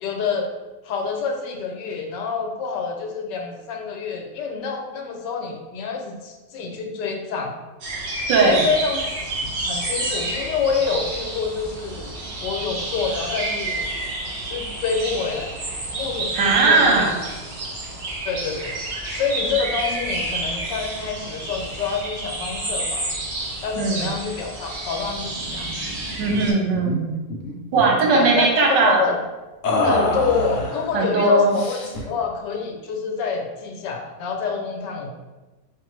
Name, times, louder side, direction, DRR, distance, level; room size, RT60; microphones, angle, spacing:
voice 1, 0.0-0.5 0.8-7.5 8.4-9.0 9.4-12.1 12.4-13.9 14.4-15.5 15.9-17.1 18.2-18.8 19.1-23.1 23.6-25.7 28.1-29.3 29.8-35.1, left 5 dB, 85° left, 2 dB, 1.3 m, -27 dB
sound 1, 7.8-26.5, right 2 dB, 45° right, 0.8 m, -30 dB
voice 2, 8.3-8.7 16.3-17.2 23.8-24.0 26.2-27.2 27.7-29.0 29.8-30.1 30.9-31.6, right 3 dB, 85° right, 0 dB, 1.5 m, -18 dB
sound 2, 26.3-26.5 26.7-27.0 27.3-28.1 29.6-30.9 31.5-32.1, left 3 dB, 65° left, 0.8 m, -26 dB
4.9 x 2.5 x 3.1 m, 1.1 s
omnidirectional pair, 1.9 m